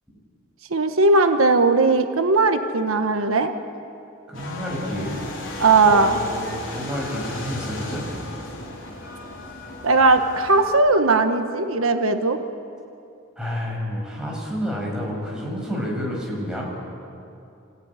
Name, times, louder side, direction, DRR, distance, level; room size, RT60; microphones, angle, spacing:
voice 1, 0.7-3.5 5.6-6.2 9.8-12.4, right 3 dB, 85° right, 7 dB, 1.3 m, -18 dB
sound 1, 4.3-10.7, left 2 dB, 65° left, 4.6 m, -35 dB
voice 2, 4.3-5.2 5.4-8.0 13.4-16.7, equal, 5° right, -3 dB, 6.5 m, -29 dB
27.5 x 15.5 x 9.8 m, 2.6 s
head